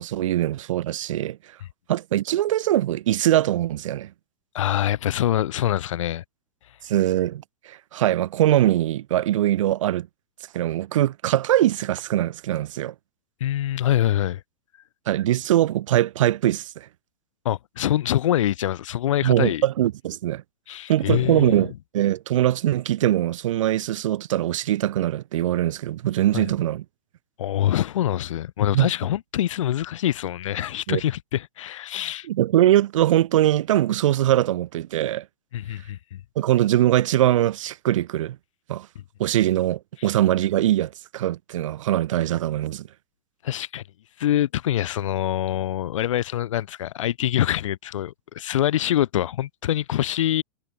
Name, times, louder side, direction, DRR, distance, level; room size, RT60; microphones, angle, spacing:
voice 1, 0.0-1.4 1.9-4.1 6.8-10.1 10.5-12.9 15.1-16.9 19.2-20.4 20.9-26.8 28.7-28.9 30.9-31.0 32.3-35.3 36.4-38.4 38.7-38.9 39.2-42.9, right 13 dB, 75° right, 0.6 m, -22 dB
voice 2, 4.5-6.2 13.4-14.4 17.4-19.6 20.7-21.7 26.3-26.5 27.4-32.3 35.5-36.2 43.4-43.8 44.2-50.4, left 12 dB, 75° left, 3.9 m, -25 dB
hypercardioid pair, 130°, 16 cm